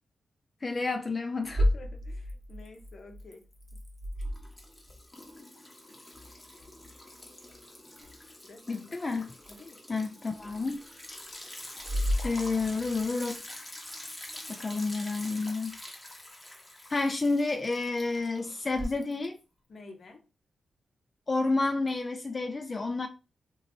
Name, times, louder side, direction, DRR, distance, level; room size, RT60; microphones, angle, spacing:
voice 1, 0.6-1.7 8.7-9.3 9.9-10.8 11.1-11.2 12.2-13.4 14.5-15.8 16.9-19.4 21.3-23.1, left 3 dB, 35° left, 0.3 m, -30 dB
sound 1, 1.4-5.0 9.4-9.5 10.4-10.5 11.8-13.1 18.7-18.8, equal, 40° right, 0.8 m, -32 dB
voice 2, 1.6-3.4 3.7-3.8 8.4-8.9 9.5-10.0 19.7-20.2, left 3 dB, 60° left, 0.7 m, -50 dB
Liquid, 2.3-2.9 3.2-19.4, left 1 dB, 20° left, 0.8 m, -46 dB
2.9 x 2.7 x 2.6 m
cardioid pair, 75°, 0 cm